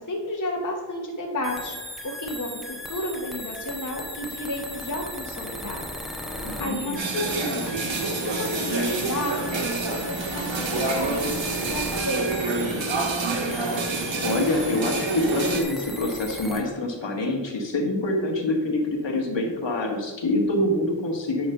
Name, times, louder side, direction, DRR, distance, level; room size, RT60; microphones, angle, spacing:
voice 1, 0.0-1.7 2.0-5.8 6.6-7.8 8.2-13.0, left 1 dB, 40° left, 0 dB, 1.2 m, -32 dB
sound 1, 1.4-16.6, equal, ahead, 1.0 m, -37 dB
voice 2, 6.4-7.0 14.2-21.5, left 1 dB, 70° left, 0 dB, 1.6 m, -26 dB
sound 2, 7.0-15.6, right 3 dB, 75° right, 1.4 m, -27 dB
9.2 x 3.2 x 6.6 m, 1.2 s
wide cardioid pair, 75°, 46 cm